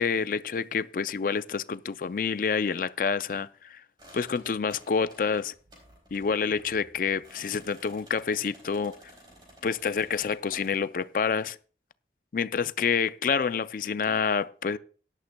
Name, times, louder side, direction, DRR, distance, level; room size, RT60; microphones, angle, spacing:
voice 1, 0.0-3.8 4.1-5.5 6.1-9.0 9.6-11.6 12.3-14.8, left 6 dB, 50° left, 0.4 m, -28 dB
sound 1, 4.0-10.7, equal, 25° right, 4.3 m, -53 dB
17.0 x 11.5 x 2.2 m
head